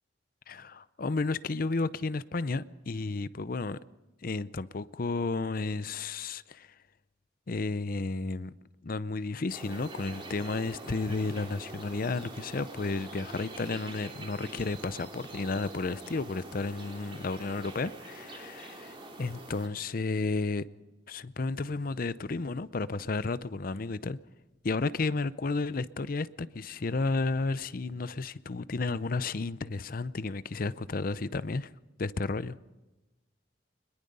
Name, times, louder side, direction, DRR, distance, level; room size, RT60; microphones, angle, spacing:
voice 1, 0.5-3.8 4.2-6.7 7.5-8.5 8.8-20.6 21.1-24.2 24.6-31.7 32.0-32.6, left 3 dB, 50° left, 0.6 m, -32 dB
sound 1, 9.5-19.7, right 2 dB, 30° right, 3.1 m, -45 dB
24.0 x 21.5 x 5.5 m
head